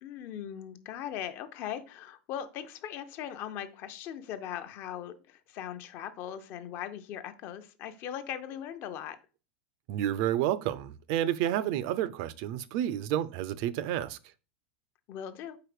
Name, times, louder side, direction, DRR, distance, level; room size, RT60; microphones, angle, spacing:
voice 1, 0.0-9.2 15.1-15.6, left 10 dB, 40° left, 0.6 m, -39 dB
voice 2, 9.9-14.2, right 11 dB, 55° right, 0.5 m, -30 dB
4.8 x 4.2 x 4.9 m
supercardioid pair, 145°, 5 cm